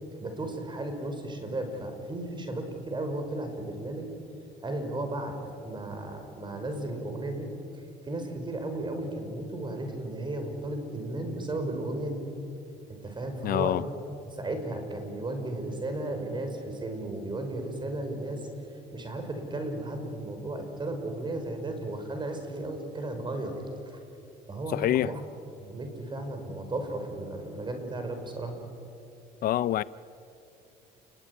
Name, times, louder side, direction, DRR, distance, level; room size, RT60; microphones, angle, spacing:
voice 1, 0.2-4.1 4.6-5.4 5.6-12.2 13.0-18.5 18.9-23.6 24.5-25.2 25.6-28.5, right 2 dB, 25° right, 5.5 m, -34 dB
voice 2, 13.4-13.8 24.7-25.1 29.4-29.8, left 13 dB, 60° left, 0.5 m, -26 dB
29.5 x 21.0 x 9.8 m
cardioid pair, 110°, 17 cm